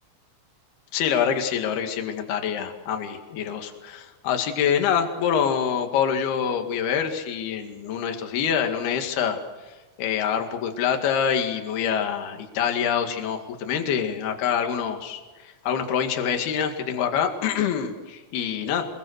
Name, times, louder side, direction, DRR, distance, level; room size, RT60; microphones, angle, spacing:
voice 1, 0.9-9.4 10.0-15.2 15.7-18.9, left 8 dB, 55° left, 4 dB, 3.7 m, -25 dB
27.0 x 22.0 x 6.5 m, 1.2 s
omnidirectional pair, 5.9 m